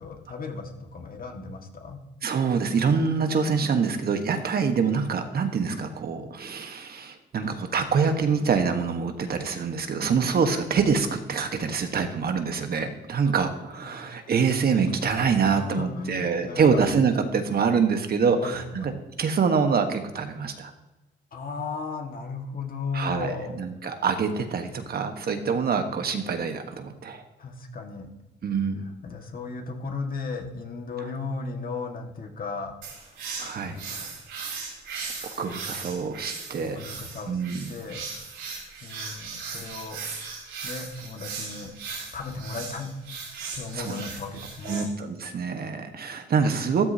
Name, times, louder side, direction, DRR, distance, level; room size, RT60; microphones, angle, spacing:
voice 1, 0.0-2.0 13.8-14.2 15.5-16.8 18.3-19.0 21.3-23.5 27.4-28.1 29.0-32.7 33.1-33.2 33.6-34.1 35.2-35.3 36.6-37.4 37.7-38.0 38.8-40.0 40.6-41.7 42.1-42.9 43.5-44.9, left 4 dB, 45° left, 3 dB, 1.8 m, -35 dB
voice 2, 2.2-18.9 19.2-20.7 22.9-27.2 28.4-28.9 33.4-33.8 35.4-36.8 37.3-37.7 43.7-44.0 44.6-46.9, right 5 dB, 50° right, 6 dB, 1.3 m, -25 dB
sound 1, 32.8-44.8, right 5 dB, 80° right, 4.4 m, -38 dB
13.5 x 13.5 x 2.8 m, 1.0 s
cardioid pair, 90°, 20 cm